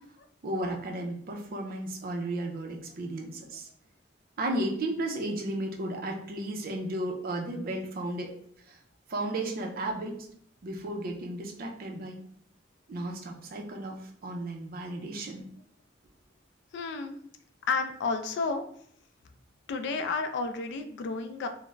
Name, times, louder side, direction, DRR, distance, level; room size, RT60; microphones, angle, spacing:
voice 1, 0.4-3.7 4.4-8.3 8.7-8.8 9.1-10.1 10.6-12.2 12.9-15.4, right 1 dB, 50° right, 1 dB, 0.5 m, -34 dB
voice 2, 16.7-17.2 17.7-18.6 19.7-21.5, left 4 dB, 65° left, 8 dB, 0.3 m, -31 dB
2.4 x 2.0 x 3.1 m, 0.65 s
head